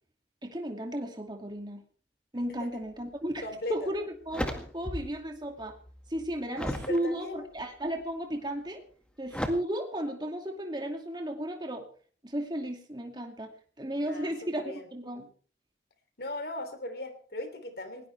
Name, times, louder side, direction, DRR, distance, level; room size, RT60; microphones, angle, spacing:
voice 1, 0.4-1.8 2.3-3.4 3.7-5.7 6.1-8.8 9.2-11.9 12.2-13.5 13.8-15.3, right 1 dB, 25° right, 3 dB, 2.5 m, -34 dB
sound 1, 3.3-3.5 3.9-5.3 5.6-7.0 7.6-8.0 9.3-9.5, equal, 5° left, 1.9 m, -35 dB
voice 2, 3.4-3.9 6.6-7.4 14.0-14.9 16.2-18.1, left 2 dB, 55° left, 8 dB, 3.2 m, -38 dB
20.5 x 18.5 x 3.4 m, 0.42 s
head